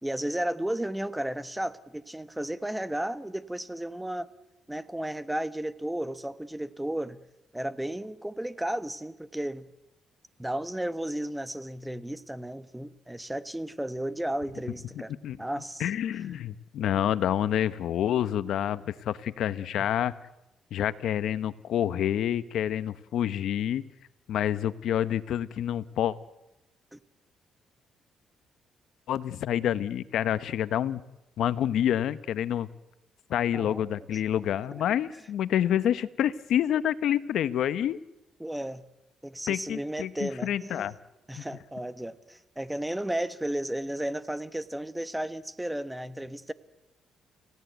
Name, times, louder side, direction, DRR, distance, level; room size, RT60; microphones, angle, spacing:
voice 1, 0.0-4.3 4.7-7.2 7.5-9.7 10.4-15.1 15.4-15.8 19.8-19.9 26.9-27.0 33.5-34.0 38.4-38.8 39.2-40.9 41.3-46.5, right 1 dB, 5° right, 13 dB, 1.2 m, -33 dB
voice 2, 15.8-20.2 20.7-23.8 24.3-26.2 29.1-31.0 31.4-32.7 33.3-38.0 39.5-40.9 41.4-41.5, left 10 dB, 75° left, 15 dB, 1.0 m, -28 dB
29.5 x 17.0 x 8.1 m, 0.96 s
cardioid pair, 90°, 0 cm